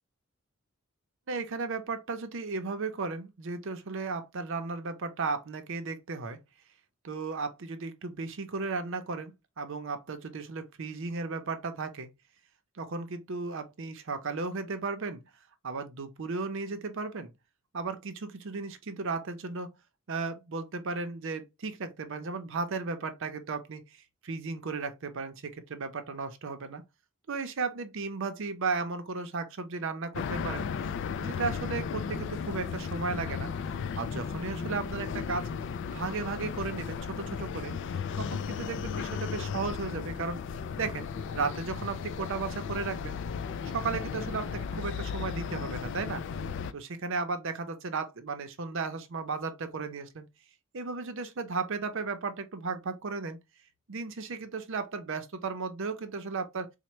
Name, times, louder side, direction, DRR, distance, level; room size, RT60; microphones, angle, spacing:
voice 1, 1.3-6.4 7.0-12.1 12.7-15.2 15.6-17.3 17.7-19.7 20.1-26.8 27.3-30.7 31.2-33.5 34.0-35.5 35.9-37.7 38.2-40.4 40.8-41.1 41.3-43.2 43.7-46.2 46.7-50.2 50.7-53.4 53.9-56.7, right 4 dB, 65° right, 0.6 m, -35 dB
sound 1, 30.1-46.7, left 6 dB, 60° left, 0.3 m, -35 dB
4.3 x 2.1 x 3.0 m
head